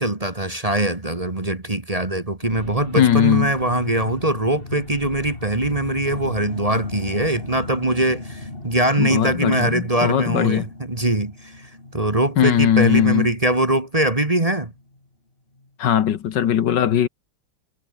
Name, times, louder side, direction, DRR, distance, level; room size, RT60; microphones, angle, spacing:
voice 1, 0.0-14.7, right 1 dB, 20° right, 1.7 m, -22 dB
sound 1, 2.4-15.1 15.6-15.7, left 2 dB, 25° left, 4.5 m, -37 dB
voice 2, 3.0-3.5 9.0-10.7 12.4-13.3 15.8-17.1, left 10 dB, 65° left, 1.7 m, -19 dB
omnidirectional pair, 2.1 m